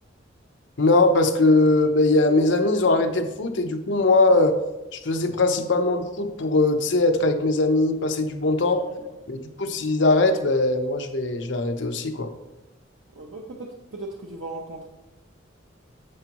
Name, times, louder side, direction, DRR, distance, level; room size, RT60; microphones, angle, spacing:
voice 1, 0.8-4.6 4.9-8.8 9.3-12.3, left 2 dB, 70° left, 5 dB, 0.8 m, -21 dB
voice 2, 8.7-9.2 13.1-14.9, right 2 dB, 90° right, 0 dB, 0.9 m, -38 dB
9.8 x 7.0 x 3.0 m, 0.99 s
head